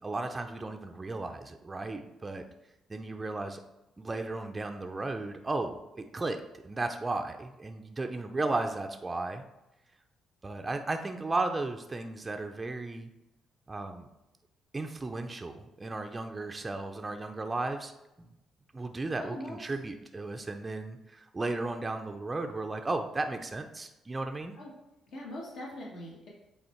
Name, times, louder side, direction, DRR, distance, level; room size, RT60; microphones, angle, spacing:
voice 1, 0.0-2.5 2.9-3.6 4.0-9.4 10.4-13.1 13.7-14.1 14.7-17.9 18.2-18.3 18.7-24.6, right 2 dB, 20° right, 5 dB, 0.4 m, -35 dB
voice 2, 19.2-19.6 24.5-24.7 25.1-26.3, left 1 dB, 65° left, -4 dB, 1.5 m, -41 dB
8.0 x 3.3 x 4.4 m, 0.95 s
cardioid pair, 120°, 0 cm